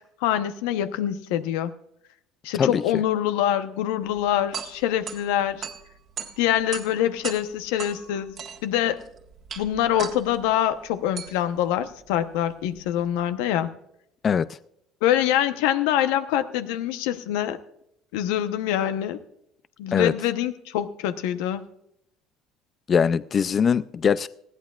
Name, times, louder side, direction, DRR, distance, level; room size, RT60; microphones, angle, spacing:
voice 1, 0.2-1.7 2.4-5.7 6.4-8.3 8.6-9.0 9.6-13.7 15.0-17.6 18.1-19.2 19.8-21.7, left 11 dB, 90° left, 0.9 m, -25 dB
sound 1, 4.1-13.2, right 7 dB, 45° right, 1.5 m, -40 dB
voice 2, 22.9-24.3, left 7 dB, 35° left, 0.4 m, -21 dB
19.5 x 14.5 x 2.4 m
supercardioid pair, 105°, 0 cm